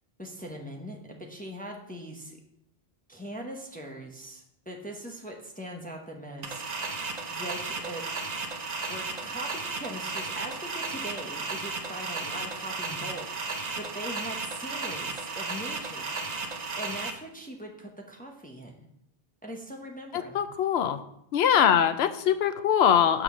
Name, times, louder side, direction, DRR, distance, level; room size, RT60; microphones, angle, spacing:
voice 1, 0.2-2.4 3.1-8.0 8.9-16.2 16.8-18.7 19.4-20.4 21.6-21.8, right 1 dB, 10° left, 1 dB, 0.9 m, -41 dB
sound 1, 6.4-17.1, right 4 dB, 45° right, 0.8 m, -34 dB
voice 2, 20.3-21.0 21.3-23.2, left 9 dB, 80° left, 11 dB, 0.9 m, -22 dB
6.1 x 5.2 x 6.2 m, 0.76 s
omnidirectional pair, 1.1 m